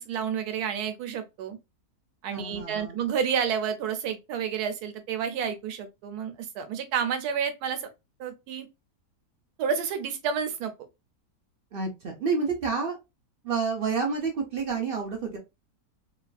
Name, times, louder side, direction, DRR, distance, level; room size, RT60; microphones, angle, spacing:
voice 1, 0.0-1.6 2.2-7.9 8.2-8.7 9.6-10.7, right 7 dB, 85° right, 1.1 m, -30 dB
voice 2, 2.3-3.0 11.7-13.0 13.4-15.4, right 5 dB, 55° right, 0.6 m, -29 dB
2.9 x 2.4 x 2.2 m
omnidirectional pair, 1.6 m